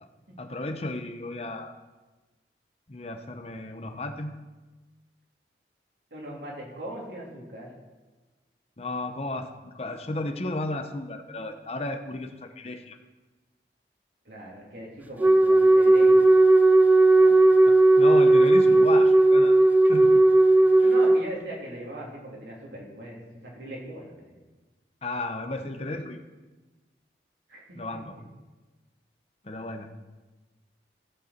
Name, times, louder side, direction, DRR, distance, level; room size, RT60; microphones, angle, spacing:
voice 1, 0.4-1.7 2.9-4.3 8.8-13.0 17.7-19.6 19.9-20.1 20.8-20.9 25.0-26.2 27.8-28.1 29.4-29.9, left 2 dB, 35° left, 7 dB, 0.8 m, -34 dB
voice 2, 6.1-7.7 14.2-16.3 16.8-16.9 17.2-17.4 20.8-24.3 27.5-27.8, right 1 dB, 75° right, -3 dB, 3.3 m, -40 dB
Wind instrument woodwind instrument, 15.2-21.3, right 2 dB, 10° right, 0.5 m, -17 dB
16.0 x 8.1 x 4.4 m, 1.2 s
head